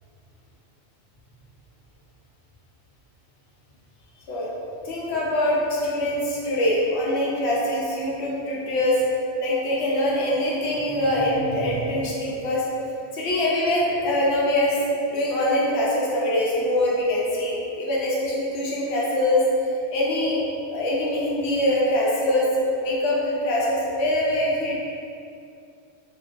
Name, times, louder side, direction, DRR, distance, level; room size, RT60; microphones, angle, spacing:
voice 1, 4.8-9.0 9.4-12.6 13.1-14.8 15.0-19.4 19.9-20.4 20.7-24.7, left 1 dB, 70° left, -5 dB, 0.8 m, -23 dB
2.3 x 2.2 x 2.4 m, 2.5 s
omnidirectional pair, 1.3 m